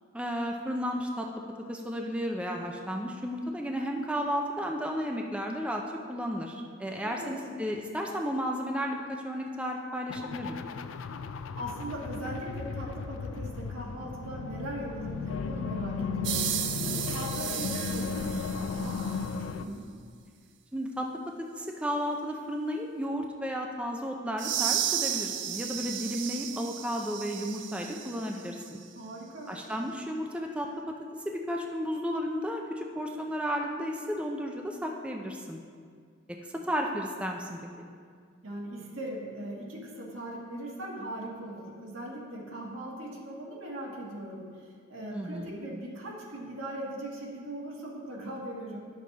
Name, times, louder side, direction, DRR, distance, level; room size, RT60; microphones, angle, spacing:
voice 1, 0.1-1.3 1.7-5.8 6.1-10.6 20.7-21.1 21.4-28.8 29.5-30.9 31.3-35.6 36.7-37.6 45.1-45.6, equal, 5° right, 1 dB, 0.5 m, -33 dB
voice 2, 7.0-7.4 11.6-19.8 28.9-29.5 38.4-48.8, right 1 dB, 80° right, -3 dB, 1.6 m, -39 dB
sound 1, 10.1-19.6, left 5 dB, 75° left, 0.4 m, -35 dB
sound 2, 13.1-18.3, left 1 dB, 25° left, 1.4 m, -49 dB
sound 3, 16.2-19.3 24.4-28.4, right 10 dB, 65° right, 0.5 m, -33 dB
10.0 x 6.6 x 4.0 m, 2.1 s
head